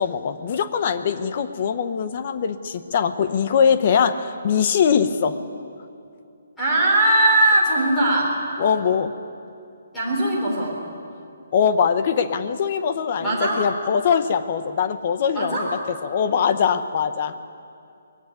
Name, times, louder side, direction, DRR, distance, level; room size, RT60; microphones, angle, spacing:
voice 1, 0.0-5.4 8.6-9.1 11.5-15.7 16.0-17.3, left 7 dB, 30° left, 11 dB, 0.8 m, -22 dB
voice 2, 6.6-8.4 9.9-10.8 13.2-13.6 15.3-15.7, right 1 dB, 5° left, -7 dB, 4.0 m, -20 dB
21.0 x 15.5 x 9.4 m, 2.5 s
hypercardioid pair, 180°, 0 cm